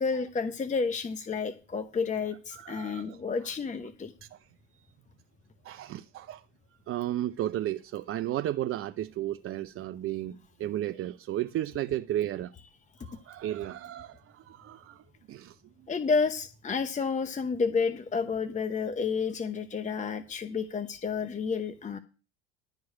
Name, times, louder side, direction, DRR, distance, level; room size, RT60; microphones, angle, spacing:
voice 1, 0.0-4.1 15.9-22.0, left 5 dB, 20° left, 0.9 m, -30 dB
voice 2, 2.5-3.2 4.2-4.4 5.6-6.4 6.9-12.5 13.0-15.0 15.3-15.6, right 13 dB, 35° right, 0.5 m, -34 dB
11.5 x 4.7 x 8.5 m
hypercardioid pair, 70°, 37 cm